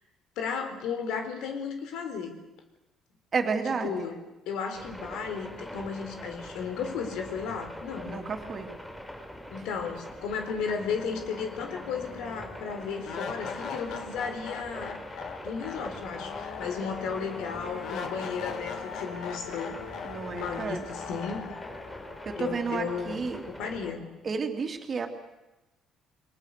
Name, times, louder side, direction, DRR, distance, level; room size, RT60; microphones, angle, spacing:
voice 1, 0.4-2.4 3.8-4.2 4.5-8.2 9.5-15.0 15.4-19.8 20.3-21.4 22.4-23.2 23.6-24.1, left 6 dB, 85° left, 6 dB, 4.1 m, -34 dB
voice 2, 3.3-4.1 8.0-8.7 20.0-20.9 22.2-23.4 24.2-25.1, right 5 dB, 30° right, 5 dB, 2.8 m, -31 dB
sound 1, 4.7-23.9, equal, 5° left, 5.0 m, -43 dB
sound 2, 10.0-10.1 10.4-23.5, left 6 dB, 55° left, 2.4 m, -41 dB
29.0 x 22.5 x 6.7 m, 1.0 s
cardioid pair, 160°, 0 cm